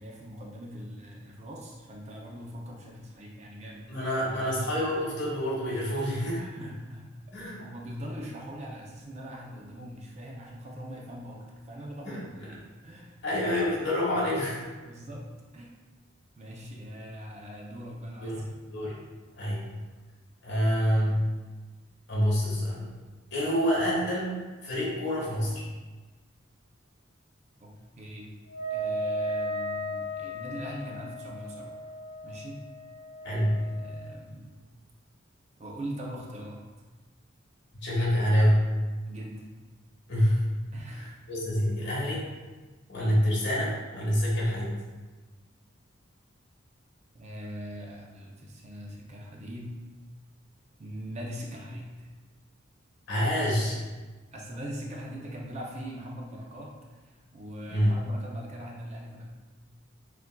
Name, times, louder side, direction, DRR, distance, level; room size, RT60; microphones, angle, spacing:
voice 1, 0.0-3.9 4.4-4.7 6.4-7.1 7.6-13.2 14.8-15.3 15.5-15.7 16.4-18.4 27.6-28.4 28.7-31.8 32.2-32.6 33.6-34.6 35.6-36.6 39.1-39.5 40.7-41.1 47.1-49.7 50.8-52.1 54.3-56.7 57.0-59.3, equal, 35° right, -1 dB, 0.5 m, -41 dB
voice 2, 3.9-6.4 7.3-7.6 12.0-12.5 13.2-14.6 18.2-19.0 19.4-19.7 20.4-21.2 22.1-22.9 23.3-25.6 33.2-33.6 37.8-38.6 40.1-40.4 40.9-42.2 42.9-44.7 53.1-53.8 57.7-57.9, equal, 60° left, -6 dB, 1.5 m, -27 dB
Wind instrument woodwind instrument, 28.5-34.2, equal, 45° left, 0.5 m, -35 dB
6.6 x 2.5 x 2.3 m, 1.3 s
head